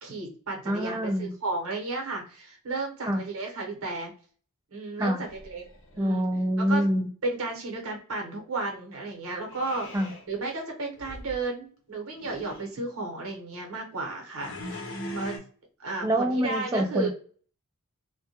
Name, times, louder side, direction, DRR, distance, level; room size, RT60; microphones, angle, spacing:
voice 1, 0.0-4.1 4.7-5.7 5.9-6.2 6.6-6.8 7.2-9.9 10.3-14.8 15.1-15.4 15.8-17.1, right 3 dB, 70° right, 1 dB, 0.9 m, -33 dB
voice 2, 0.7-1.3 3.1-3.2 5.0-5.2 6.0-7.1 9.9-10.1 16.0-17.1, equal, 15° right, 5 dB, 0.3 m, -26 dB
sound 1, 5.2-6.1 9.5-10.3 10.9-11.4 12.0-12.7 14.3-15.4, equal, 55° left, 0.7 m, -40 dB
2.2 x 2.1 x 2.8 m, 0.43 s
head